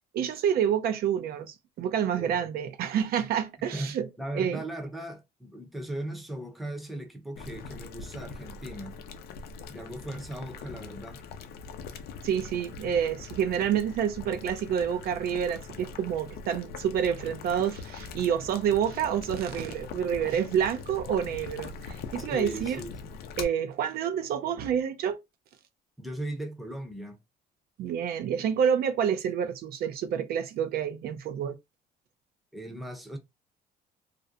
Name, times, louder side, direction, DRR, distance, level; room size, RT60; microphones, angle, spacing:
voice 1, 0.1-4.1 4.3-4.6 12.2-22.8 23.4-25.2 27.8-31.6, right 8 dB, 65° right, 0.5 m, -28 dB
voice 2, 2.1-2.5 3.7-8.9 9.7-11.2 22.3-22.9 26.0-27.2 32.5-33.2, right 1 dB, ahead, 0.6 m, -38 dB
Boiling, 7.4-23.4, left 5 dB, 70° left, 0.5 m, -42 dB
2.5 x 2.1 x 2.6 m
cardioid pair, 110°, 17 cm